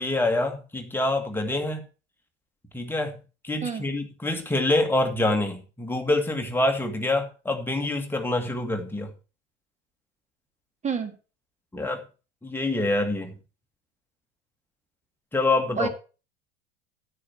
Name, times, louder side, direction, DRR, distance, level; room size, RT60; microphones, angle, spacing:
voice 1, 0.0-1.8 2.7-3.1 3.4-9.1 11.7-12.0 12.4-13.4 15.3-15.9, left 2 dB, 5° left, 1.9 m, -26 dB
voice 2, 3.6-3.8 10.8-11.1 15.8-15.9, right 6 dB, 20° right, 1.9 m, -28 dB
9.9 x 8.9 x 4.4 m
figure-of-eight pair, 75°, 34 cm